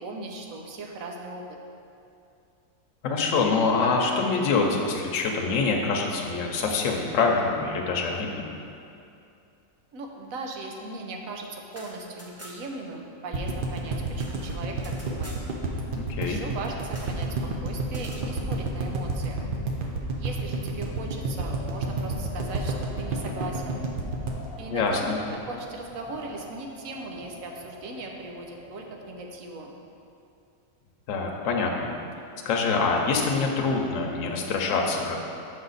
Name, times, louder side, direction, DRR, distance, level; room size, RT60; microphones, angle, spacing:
voice 1, 0.0-1.4 9.9-15.4 16.2-17.3 17.6-19.4 20.2-23.8 24.6-29.8, right 2 dB, 75° right, 1 dB, 1.1 m, -38 dB
voice 2, 3.0-8.5 15.9-16.4 24.7-25.2 31.1-31.9 32.4-35.2, left 4 dB, 65° left, 1 dB, 1.1 m, -25 dB
sound 1, 11.7-12.8 13.1-13.2 13.5-15.5 16.9-17.2 17.9-18.3, equal, 15° right, 0.6 m, -47 dB
sound 2, 13.3-25.5 25.8-25.9 26.1-26.2, right 3 dB, 50° right, 0.7 m, -30 dB
Wind, 21.1-29.5, left 2 dB, 45° left, 0.8 m, -46 dB
6.4 x 5.5 x 4.0 m, 2.6 s
omnidirectional pair, 1.5 m